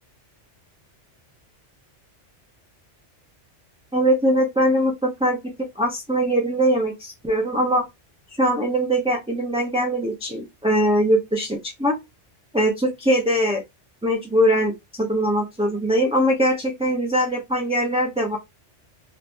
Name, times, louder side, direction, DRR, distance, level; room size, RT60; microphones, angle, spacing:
voice 1, 3.9-5.4 5.8-7.8 8.4-12.0 12.5-13.6 14.0-18.4, equal, 5° right, 0.6 m, -21 dB
3.0 x 2.5 x 3.5 m
omnidirectional pair, 1.2 m